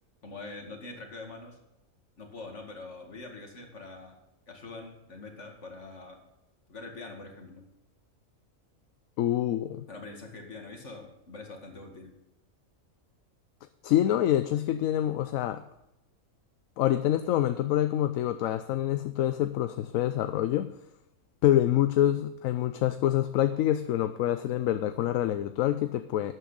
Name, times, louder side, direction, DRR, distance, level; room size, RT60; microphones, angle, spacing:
voice 1, 0.2-1.6 2.2-4.2 4.5-6.2 6.7-7.7 9.9-12.1, left 3 dB, 55° left, 2 dB, 2.4 m, -44 dB
voice 2, 9.2-9.8 13.8-15.6 16.8-20.7 21.4-26.3, left 12 dB, 75° left, 11 dB, 1.0 m, -26 dB
12.5 x 9.5 x 4.0 m, 0.87 s
omnidirectional pair, 1.4 m